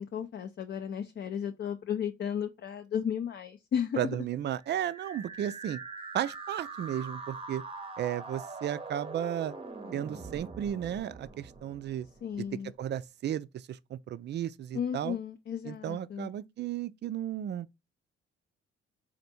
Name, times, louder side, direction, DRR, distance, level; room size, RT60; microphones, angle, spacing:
voice 1, 0.0-4.0 12.2-12.7 14.7-16.3, left 8 dB, 40° left, 0.5 m, -34 dB
voice 2, 4.0-5.8 6.1-7.6 8.0-9.5 9.9-12.1 12.4-12.5 12.8-15.2 15.6-17.7, right 10 dB, 35° right, 0.4 m, -34 dB
sound 1, 4.6-12.6, right 3 dB, 20° right, 0.8 m, -43 dB
4.2 x 2.6 x 4.1 m
hypercardioid pair, 45°, 30 cm